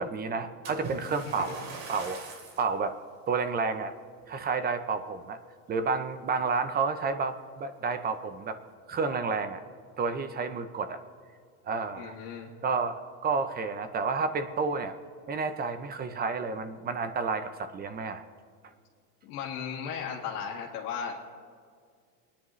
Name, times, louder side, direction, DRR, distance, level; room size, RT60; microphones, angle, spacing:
voice 1, 0.0-2.2 2.6-2.9 3.3-3.9 4.3-5.4 5.7-8.6 8.9-9.6 10.0-11.0 11.7-12.2 12.6-14.9 15.3-18.2, right 4 dB, 20° right, 10 dB, 0.5 m, -30 dB
Splash splatter, 0.6-2.7 3.3-3.6 4.2-4.3, right 4 dB, 60° right, 2.8 m, -42 dB
voice 2, 12.0-12.5 19.2-21.2, left 7 dB, 85° left, -2 dB, 1.9 m, -36 dB
24.5 x 9.9 x 3.1 m, 2.1 s
supercardioid pair, 135°, 45 cm